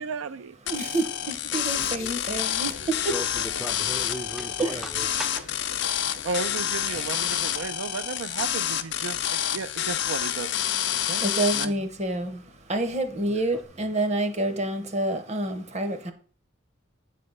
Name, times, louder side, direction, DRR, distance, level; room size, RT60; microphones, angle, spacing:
voice 1, 0.0-0.5 6.2-10.8 11.1-11.2 11.5-11.7, right 5 dB, 85° right, 0.4 m, -34 dB
sound 1, 0.7-11.7, left 11 dB, 60° left, 0.5 m, -28 dB
voice 2, 0.7-2.7 3.0-3.1 4.6-4.8 11.2-12.4 12.7-16.1, right 2 dB, 35° right, 0.8 m, -28 dB
sound 2, 1.6-7.7, left 5 dB, 85° left, 0.8 m, -44 dB
voice 3, 3.1-5.5 7.0-7.2, equal, ahead, 0.4 m, -37 dB
8.5 x 3.3 x 5.3 m
head